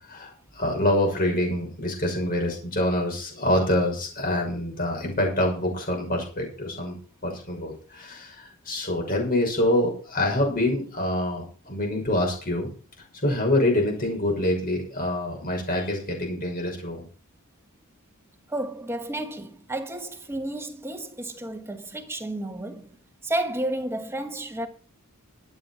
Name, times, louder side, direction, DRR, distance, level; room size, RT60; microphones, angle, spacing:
voice 1, 0.1-7.0 7.2-12.7 13.2-17.0, left 1 dB, 40° left, 6.0 m, -26 dB
voice 2, 18.5-22.9 23.2-24.7, right 1 dB, 10° right, 1.5 m, -31 dB
12.5 x 9.1 x 5.8 m
head